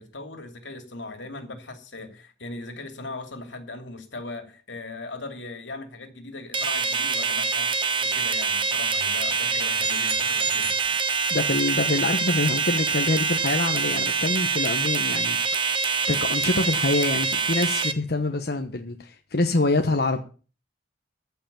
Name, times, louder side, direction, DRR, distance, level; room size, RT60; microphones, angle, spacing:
voice 1, 0.0-7.7 8.0-10.7, left 2 dB, 90° left, 6 dB, 2.9 m, -39 dB
sound 1, 6.5-17.9, right 5 dB, 25° right, 1.1 m, -25 dB
sound 2, 9.8-11.6, right 7 dB, 80° right, 2.3 m, -35 dB
voice 2, 11.3-15.4 15.7-20.2, left 2 dB, 60° left, 5 dB, 1.1 m, -25 dB
15.0 x 5.7 x 8.8 m, 0.38 s
head